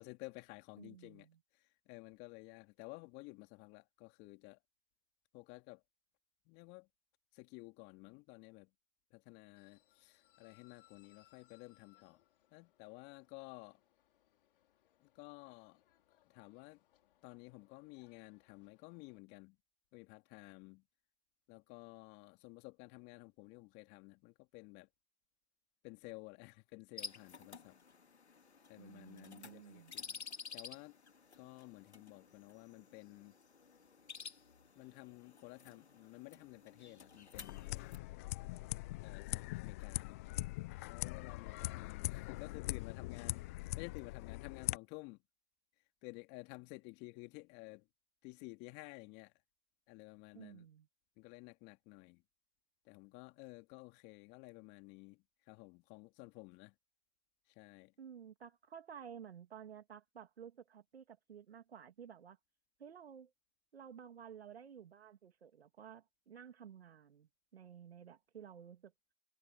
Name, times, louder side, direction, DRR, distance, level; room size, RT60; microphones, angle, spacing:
voice 1, 0.0-1.3 1.5-4.6 5.3-5.8 6.5-6.9 7.3-8.7 9.1-12.2 12.5-13.8 15.0-15.8 16.2-16.8 17.2-19.6 19.9-20.8 21.5-24.9 25.8-27.8 28.7-30.2 30.5-31.0 31.4-33.4 34.7-38.2 39.0-40.2 40.8-45.2 46.0-47.9 48.2-49.3 49.9-50.7 51.2-52.2 52.8-56.7 57.5-57.9, left 26 dB, 30° left, 2.4 m, -53 dB
voice 2, 0.8-1.4 28.8-29.9 50.3-50.9 58.0-62.4 62.8-63.3 63.7-68.9, right 8 dB, 70° right, 2.8 m, -53 dB
sound 1, 9.6-19.2, left 13 dB, 55° left, 5.3 m, -72 dB
sound 2, 27.0-38.0, left 5 dB, 85° left, 2.9 m, -53 dB
sound 3, 37.3-44.8, left 19 dB, 15° left, 0.3 m, -42 dB
hypercardioid pair, 125°, 32 cm